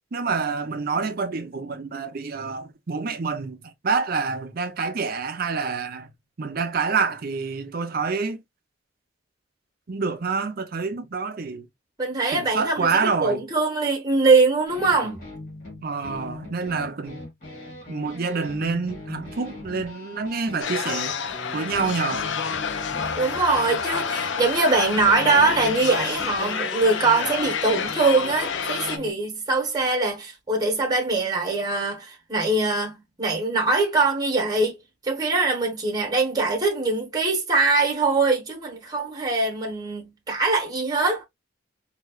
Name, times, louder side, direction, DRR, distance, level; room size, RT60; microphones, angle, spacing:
voice 1, 0.1-6.1 6.4-8.4 9.9-11.7 12.3-13.4 15.8-17.2 17.9-21.2 21.5-22.3, right 4 dB, 50° right, 0.6 m, -27 dB
voice 2, 12.0-12.9 13.2-15.2 23.2-34.8 35.0-41.2, right 3 dB, 20° right, 1.1 m, -22 dB
sound 1, 14.7-29.1, left 2 dB, 40° left, 2.6 m, -40 dB
sound 2, 20.6-29.0, left 6 dB, 65° left, 0.5 m, -29 dB
4.3 x 2.8 x 2.3 m
head